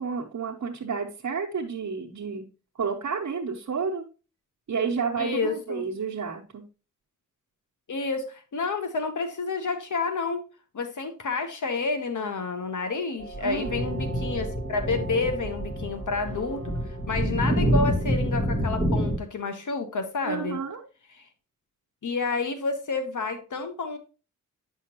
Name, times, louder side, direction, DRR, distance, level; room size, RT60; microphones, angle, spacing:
voice 1, 0.0-2.4 2.8-4.0 4.7-6.6 13.4-13.7 20.2-20.8, right 5 dB, 65° right, -3 dB, 1.0 m, -30 dB
voice 2, 5.2-5.8 7.9-10.4 10.7-16.6 17.1-20.6 22.0-24.0, left 4 dB, 70° left, 7 dB, 1.0 m, -29 dB
sound 1, 13.2-19.2, equal, 20° left, 1.3 m, -27 dB
9.0 x 5.7 x 3.0 m, 0.34 s
wide cardioid pair, 140°, 32 cm